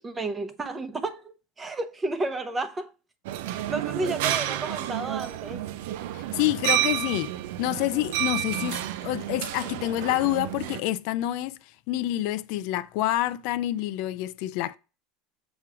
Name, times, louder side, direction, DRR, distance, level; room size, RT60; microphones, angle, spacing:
voice 1, 0.0-2.9 3.7-5.7, right 2 dB, 15° right, 0.8 m, -32 dB
sound 1, 3.2-10.8, right 13 dB, 75° right, 0.5 m, -30 dB
voice 2, 6.1-7.3 7.6-11.6 11.9-14.8, left 15 dB, 65° left, 0.4 m, -27 dB
7.1 x 3.1 x 4.7 m
supercardioid pair, 135°, 0 cm